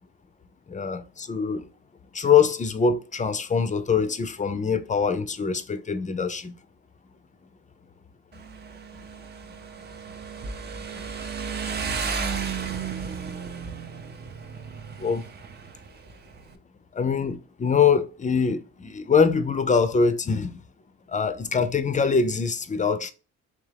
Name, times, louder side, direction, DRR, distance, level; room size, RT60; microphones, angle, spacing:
voice 1, 0.7-1.7 2.1-6.5 11.9-12.0 15.0-15.2 16.9-20.6 21.1-23.1, left 6 dB, 25° left, 0.5 m, -23 dB
Motorcycle, 8.3-16.6, right 5 dB, 35° right, 0.5 m, -34 dB
3.6 x 3.1 x 3.3 m
cardioid pair, 90°, 30 cm